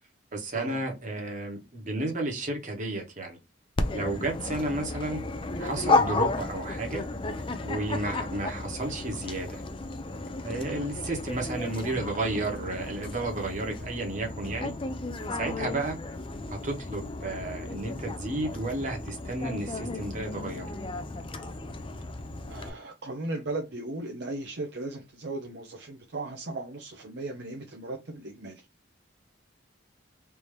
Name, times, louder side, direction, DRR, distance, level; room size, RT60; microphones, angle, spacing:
voice 1, 0.3-3.4 3.9-5.2 5.6-7.0 7.6-9.6 10.4-14.7 15.3-16.0 16.5-20.7, right 2 dB, 40° right, 1.2 m, -32 dB
Dog, 3.8-22.7, left 3 dB, 25° left, 0.4 m, -33 dB
voice 2, 22.5-28.6, right 2 dB, 60° right, 0.6 m, -37 dB
3.4 x 2.8 x 3.2 m
head